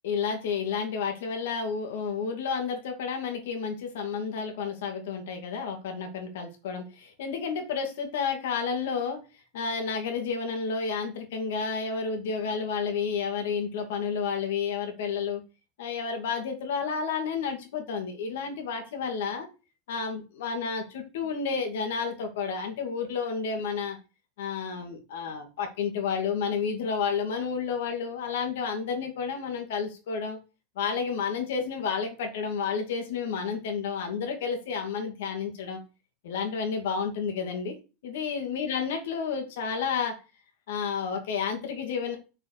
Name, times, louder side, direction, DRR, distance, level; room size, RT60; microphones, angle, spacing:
voice 1, 0.0-9.2 9.5-15.4 15.8-19.5 19.9-24.0 24.4-30.4 30.8-35.8 36.2-37.7 38.0-40.1 40.7-42.2, left 6 dB, 85° left, 3 dB, 2.4 m, -31 dB
6.1 x 5.3 x 6.7 m, 0.31 s
supercardioid pair, 110°, 0 cm